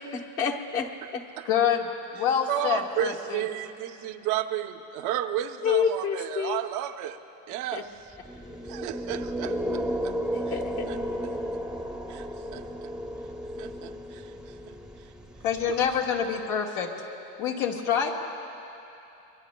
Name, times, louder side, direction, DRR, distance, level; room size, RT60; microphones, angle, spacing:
voice 1, 0.4-1.2 5.6-6.6 7.7-7.8 10.3-10.9, left 7 dB, 45° left, 1 dB, 1.2 m, -28 dB
voice 2, 1.4-3.4 15.4-16.9 17.4-18.1, left 8 dB, 75° left, 0 dB, 1.6 m, -26 dB
voice 3, 2.5-7.2 7.5-7.9 8.6-10.1 10.9-11.0 12.1-12.3 12.5-12.7 13.6-14.3 14.7-14.8, right 11 dB, 65° right, 8 dB, 0.7 m, -32 dB
sound 1, 8.1-16.2, equal, ahead, 0.7 m, -34 dB
23.5 x 23.0 x 2.2 m, 2.8 s
cardioid pair, 140°, 32 cm